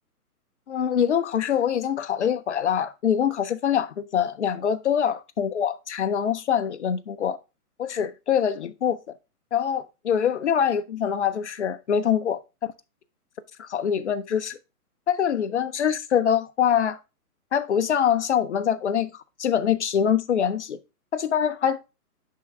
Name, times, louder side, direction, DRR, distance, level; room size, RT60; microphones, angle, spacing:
voice 1, 0.7-7.4 7.8-9.0 9.5-12.4 13.6-14.6 15.1-17.0 17.5-19.1 19.4-20.8 21.1-21.8, left 8 dB, 50° left, 0.6 m, -24 dB
10.5 x 3.8 x 3.3 m
hypercardioid pair, 165°, 46 cm